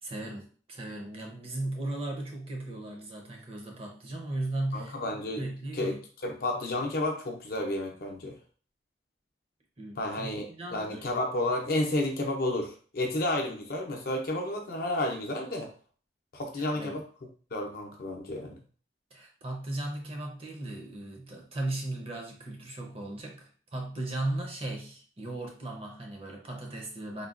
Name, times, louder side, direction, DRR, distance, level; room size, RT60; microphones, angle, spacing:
voice 1, 0.0-5.0 5.4-6.0 9.8-11.1 16.5-17.0 19.1-27.3, right 2 dB, 30° right, 1 dB, 0.6 m, -37 dB
voice 2, 4.7-5.4 5.7-5.9 6.2-8.4 10.0-15.7 16.3-17.0 17.5-18.6, left 1 dB, 55° left, 2 dB, 0.6 m, -31 dB
3.8 x 2.2 x 2.4 m, 0.42 s
head